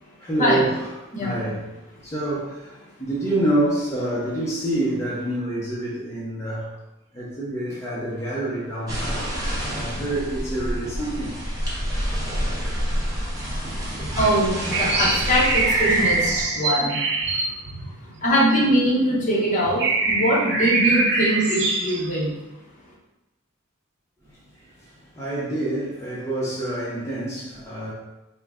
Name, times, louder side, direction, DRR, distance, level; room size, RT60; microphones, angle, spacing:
voice 1, 0.2-0.9 1.2-1.6 2.0-6.7 7.1-9.3 9.7-11.3 24.6-27.9, right 1 dB, 15° left, -8 dB, 0.6 m, -27 dB
voice 2, 1.1-1.4 14.2-16.2 16.6-16.9 18.2-19.8 20.1-22.3, equal, 35° left, -5 dB, 0.9 m, -21 dB
sound 1, 8.9-16.5, equal, 20° right, 1.0 m, -28 dB
sound 2, 14.7-18.6 19.2-19.3 19.6-22.1, right 3 dB, 55° right, 0.5 m, -23 dB
3.6 x 2.2 x 3.5 m, 0.99 s
head